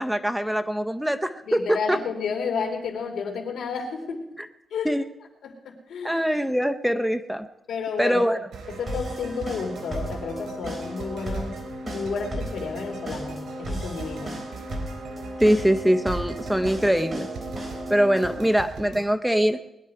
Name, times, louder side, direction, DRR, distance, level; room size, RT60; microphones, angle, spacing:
voice 1, 0.0-2.0 4.8-5.1 6.0-7.5 8.0-8.4 15.4-17.3 17.9-19.6, equal, 5° right, 9 dB, 0.6 m, -23 dB
voice 2, 1.4-4.2 4.7-4.9 5.4-6.2 7.7-8.2 8.7-11.5 11.8-14.3, left 5 dB, 85° left, 3 dB, 2.7 m, -31 dB
sound 1, 8.5-19.1, right 4 dB, 80° right, 3.1 m, -40 dB
sound 2, 8.9-18.5, right 1 dB, 25° right, 3.8 m, -35 dB
20.5 x 10.5 x 4.7 m, 0.89 s
cardioid pair, 120°, 0 cm